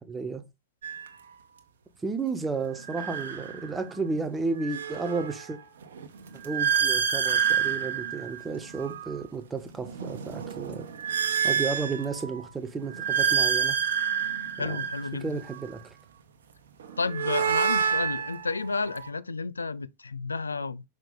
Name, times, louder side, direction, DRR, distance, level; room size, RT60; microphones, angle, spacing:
voice 1, 0.1-0.4 2.0-5.6 6.4-10.9 11.4-13.8 14.6-14.9 15.2-15.8, right 4 dB, 15° right, 1.2 m, -32 dB
sound 1, 0.8-1.1 2.7-4.0 4.4-9.2 9.7-12.4 12.8-15.8 16.8-19.1, right 7 dB, 65° right, 1.1 m, -29 dB
voice 2, 14.6-15.4 17.0-20.8, left 4 dB, 75° left, 0.5 m, -31 dB
5.8 x 5.1 x 3.7 m
figure-of-eight pair, 90°, 0 cm